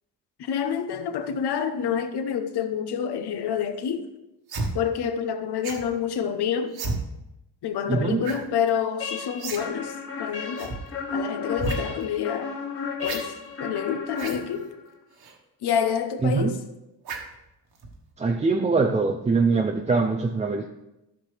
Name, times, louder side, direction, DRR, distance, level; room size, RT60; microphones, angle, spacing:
voice 1, 0.4-4.1 4.7-6.7 7.6-10.8 11.1-12.5 13.0-14.7 15.6-16.6, left 8 dB, 70° left, 1.0 m, -28 dB
sound 1, 4.5-4.7 5.6-5.9 6.7-7.0 8.2-8.4 8.7-8.8 9.4-9.6 9.9-10.0 10.6-10.8 11.5-11.8 13.0-13.2 14.1-14.4 15.2-15.3 17.0-17.3 17.8-18.0, right 3 dB, 60° right, 1.5 m, -31 dB
voice 2, 7.9-8.2 16.2-16.5 18.2-20.7, right 4 dB, 15° right, 0.4 m, -23 dB
sound 2, 9.0-14.9, left 5 dB, 35° left, 2.0 m, -34 dB
13.5 x 5.9 x 3.4 m
cardioid pair, 125°, 41 cm